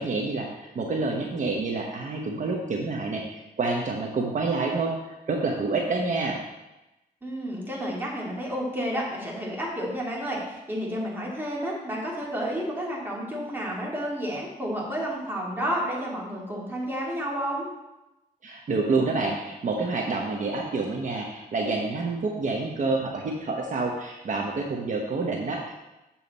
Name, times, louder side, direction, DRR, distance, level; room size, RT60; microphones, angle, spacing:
voice 1, 0.0-4.9 5.3-6.4 18.4-25.7, right 3 dB, 55° right, 0 dB, 0.9 m, -28 dB
voice 2, 7.2-17.7, equal, 15° right, -4 dB, 2.3 m, -31 dB
7.3 x 7.2 x 4.1 m, 0.99 s
wide cardioid pair, 130°, 15 cm